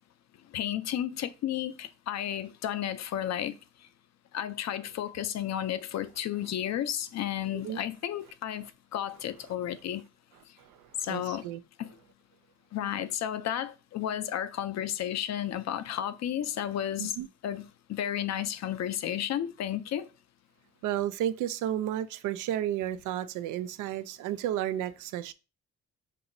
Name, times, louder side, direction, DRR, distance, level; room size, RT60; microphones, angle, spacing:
voice 1, 0.5-3.5 4.3-10.0 11.0-11.5 11.8-12.0 12.7-17.2 17.4-17.6 17.9-20.1, left 11 dB, 60° left, 0.6 m, -32 dB
voice 2, 11.1-11.6 17.0-17.3 20.8-25.3, right 11 dB, 90° right, 0.5 m, -32 dB
5.5 x 2.9 x 2.6 m
cardioid pair, 90°, 30 cm